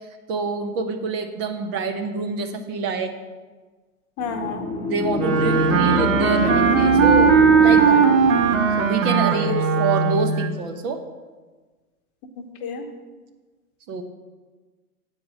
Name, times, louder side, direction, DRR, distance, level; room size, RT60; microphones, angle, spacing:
voice 1, 0.3-3.1 4.8-8.0 8.8-11.0 13.9-14.0, right 4 dB, 40° right, 6 dB, 0.9 m, -27 dB
voice 2, 4.2-4.7 9.1-9.6 12.4-12.9, left 6 dB, 30° left, 5 dB, 1.0 m, -30 dB
sound 1, 4.2-9.1, left 2 dB, 10° left, 1.1 m, -26 dB
Wind instrument woodwind instrument, 5.2-10.5, right 6 dB, 20° right, 0.3 m, -18 dB
8.2 x 4.7 x 7.4 m, 1.3 s
hypercardioid pair, 115°, 45 cm